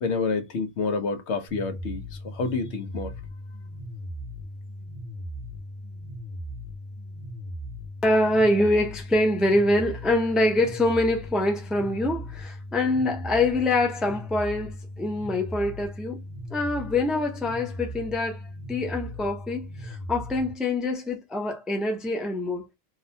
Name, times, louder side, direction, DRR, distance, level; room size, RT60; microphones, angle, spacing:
voice 1, 0.0-3.1, left 4 dB, 85° left, 1.0 m, -28 dB
sound 1, 1.5-20.5, equal, 45° right, 0.7 m, -38 dB
voice 2, 8.0-16.2 16.5-18.4 18.7-22.6, left 1 dB, ahead, 0.4 m, -25 dB
2.8 x 2.0 x 2.7 m
omnidirectional pair, 1.1 m